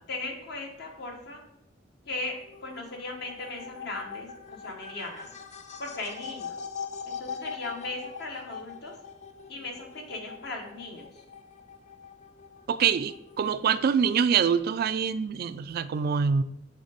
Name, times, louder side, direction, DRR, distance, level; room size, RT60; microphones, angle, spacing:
voice 1, 0.1-1.4 2.0-2.4 2.6-5.3 5.8-6.6 7.0-8.9 9.5-11.1, left 2 dB, 60° left, 1 dB, 1.3 m, -37 dB
sound 1, 2.4-13.6, left 6 dB, 40° left, 0.5 m, -42 dB
voice 2, 12.7-16.4, right 7 dB, 55° right, 13 dB, 0.3 m, -25 dB
6.5 x 3.5 x 5.1 m, 0.82 s
head